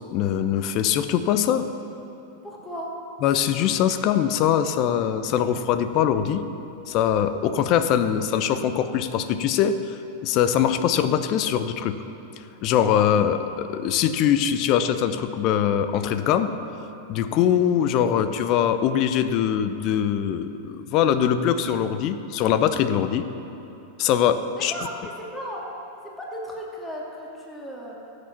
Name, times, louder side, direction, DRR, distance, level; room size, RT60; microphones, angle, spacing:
voice 1, 0.1-1.7 3.2-6.5 6.9-9.8 10.2-12.0 12.6-16.5 17.1-23.3 24.0-24.7, left 9 dB, 40° left, 11 dB, 0.7 m, -22 dB
voice 2, 2.4-2.9 24.5-25.6 26.2-28.0, equal, 10° left, -3 dB, 2.7 m, -35 dB
13.0 x 8.1 x 7.1 m, 2.9 s
figure-of-eight pair, 90°, 0 cm